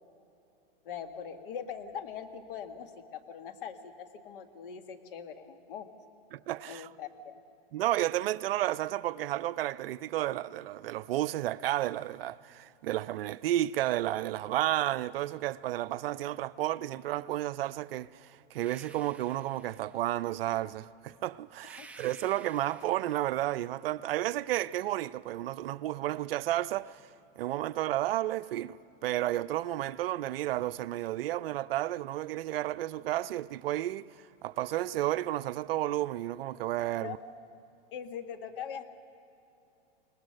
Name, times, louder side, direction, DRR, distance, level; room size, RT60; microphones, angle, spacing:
voice 1, 0.8-5.9 6.6-7.4 21.8-21.9 37.0-37.1 37.9-38.8, left 8 dB, 65° left, 1.6 m, -42 dB
voice 2, 6.3-6.9 7.7-27.0 27.4-34.1 34.4-37.2, right 14 dB, 75° right, 0.5 m, -32 dB
sound 1, 18.5-20.2 21.6-23.7, right 3 dB, 5° right, 0.5 m, -54 dB
22.0 x 19.5 x 6.5 m
hypercardioid pair, 140°, 29 cm